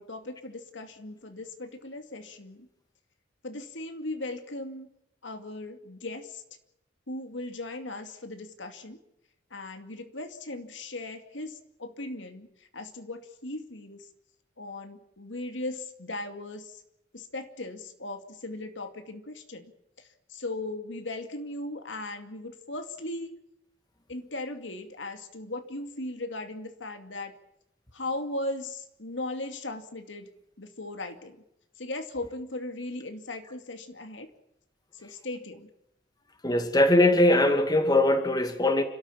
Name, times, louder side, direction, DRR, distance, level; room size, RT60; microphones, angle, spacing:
voice 1, 0.0-2.6 3.4-4.9 5.2-6.4 7.1-9.0 9.5-12.5 12.7-14.0 14.6-16.7 17.1-19.7 20.3-23.4 24.1-27.3 27.9-30.3 30.6-31.4 31.8-34.3 35.0-35.7, left 2 dB, 80° left, 2.4 m, -37 dB
voice 2, 36.4-38.8, left 1 dB, 20° left, 2.2 m, -21 dB
29.0 x 13.5 x 8.6 m
head